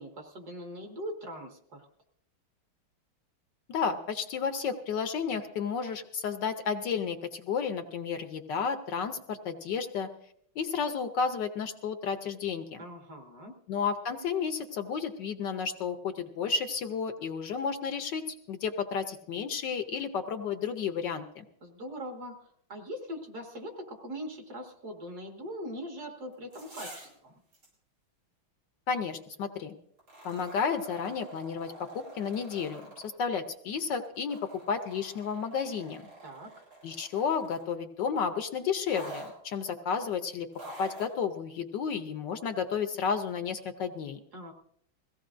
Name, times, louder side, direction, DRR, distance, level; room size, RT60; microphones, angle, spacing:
voice 1, 0.0-1.9 12.8-13.6 21.6-27.3 36.2-36.5 44.3-44.5, equal, 50° right, 2 dB, 2.2 m, -41 dB
voice 2, 3.7-10.1 10.6-12.8 13.7-21.4 28.9-29.7 30.2-36.1 36.8-40.5 40.8-44.2, left 6 dB, 65° left, 8 dB, 1.3 m, -32 dB
sound 1, 26.3-27.2 27.5-27.7 30.0-33.1 34.0-37.7 38.9-39.3 40.5-41.1 42.0-42.1, right 1 dB, 80° right, 6.7 m, -47 dB
22.0 x 16.0 x 2.5 m, 0.69 s
omnidirectional pair, 2.3 m